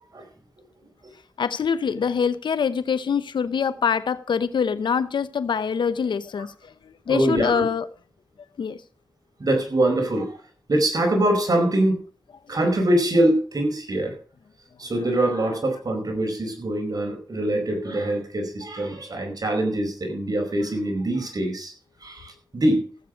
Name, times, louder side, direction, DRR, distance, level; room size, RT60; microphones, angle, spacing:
voice 1, 1.4-7.9 8.6-8.8 12.5-12.6, left 6 dB, 90° left, 14 dB, 0.8 m, -24 dB
voice 2, 7.1-7.6 9.4-10.4 10.7-12.0 12.5-14.2 14.8-21.7 22.0-22.8, right 1 dB, 55° right, 4 dB, 4.8 m, -23 dB
15.5 x 8.6 x 5.2 m, 0.40 s
cardioid pair, 55°, 8 cm